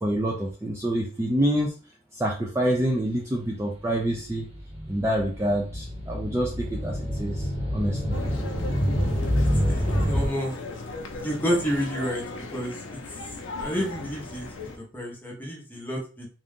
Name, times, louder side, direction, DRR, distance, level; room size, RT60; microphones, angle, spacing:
voice 1, 0.0-1.7 2.1-4.5 4.9-8.2, right 1 dB, 15° right, -1 dB, 0.4 m, -27 dB
sound 1, 3.8-10.3, equal, 30° right, 1.3 m, -27 dB
sound 2, 8.1-14.8, left 3 dB, 75° left, 0.6 m, -37 dB
voice 2, 9.6-10.6 11.2-12.2 12.5-13.2 13.6-14.5 14.7-16.3, equal, 10° left, -2 dB, 0.9 m, -30 dB
3.6 x 2.5 x 3.6 m, 0.39 s
head